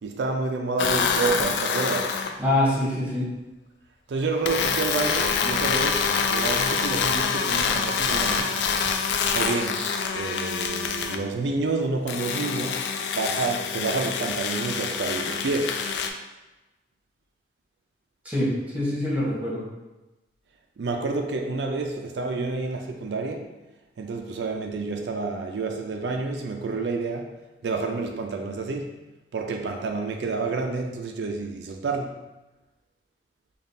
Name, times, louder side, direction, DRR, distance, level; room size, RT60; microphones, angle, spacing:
voice 1, 0.0-2.2 4.1-8.6 8.8-8.9 9.3-15.8 20.8-23.5 24.0-27.3 27.6-29.0 29.3-32.2, right 3 dB, 80° right, 3 dB, 0.4 m, -29 dB
sound 1, 0.8-2.3 4.4-11.2 12.1-16.1, left 6 dB, 80° left, 0.3 m, -26 dB
voice 2, 2.4-3.3 18.2-18.5 18.7-19.7, left 1 dB, 10° right, -6 dB, 0.9 m, -24 dB
5.2 x 2.3 x 2.6 m, 1.1 s
head